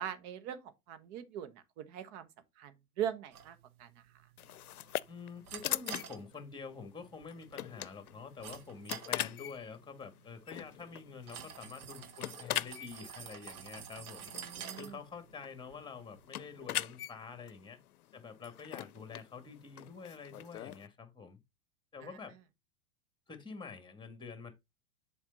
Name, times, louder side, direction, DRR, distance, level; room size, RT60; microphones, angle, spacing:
voice 1, 0.0-2.3 2.6-3.9 14.3-15.0 22.0-22.1, right 10 dB, 50° right, 1.2 m, -41 dB
sound 1, 3.3-16.6, right 8 dB, 80° right, 1.1 m, -51 dB
sound 2, 4.4-20.9, left 13 dB, 85° left, 0.6 m, -42 dB
voice 2, 5.1-14.3 14.8-17.8 18.1-21.4 21.9-22.3 23.3-24.5, left 5 dB, 10° left, 1.7 m, -47 dB
7.2 x 4.3 x 3.9 m
hypercardioid pair, 100°, 43 cm